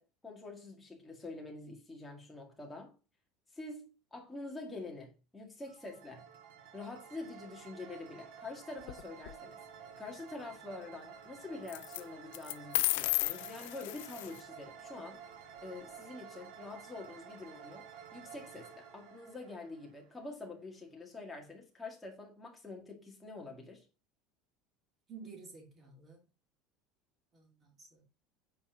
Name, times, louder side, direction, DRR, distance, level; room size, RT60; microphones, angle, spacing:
voice 1, 0.0-2.9 3.5-6.2 6.7-9.6 10.0-15.2 15.6-17.9 18.1-23.9, left 3 dB, 5° left, 1.9 m, -46 dB
sound 1, 5.6-20.5, right 7 dB, 80° right, 2.4 m, -52 dB
sound 2, 8.8-9.3 11.7-12.0 12.3-14.4, left 19 dB, 80° left, 0.4 m, -34 dB
voice 2, 25.1-26.2 27.3-28.0, right 5 dB, 25° right, 2.4 m, -52 dB
8.7 x 4.2 x 5.1 m
cardioid pair, 170°, 0 cm